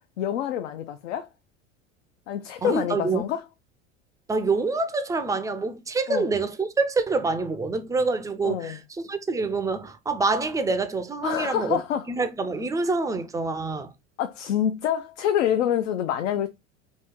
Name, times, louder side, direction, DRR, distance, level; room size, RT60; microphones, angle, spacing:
voice 1, 0.2-1.3 2.3-3.4 6.1-6.3 8.4-8.8 11.2-12.0 14.2-16.5, left 10 dB, 75° left, 0.5 m, -26 dB
voice 2, 2.6-3.2 4.3-11.8 12.1-13.9, right 3 dB, 10° right, 0.4 m, -26 dB
3.0 x 2.6 x 3.5 m
hypercardioid pair, 80°, 36 cm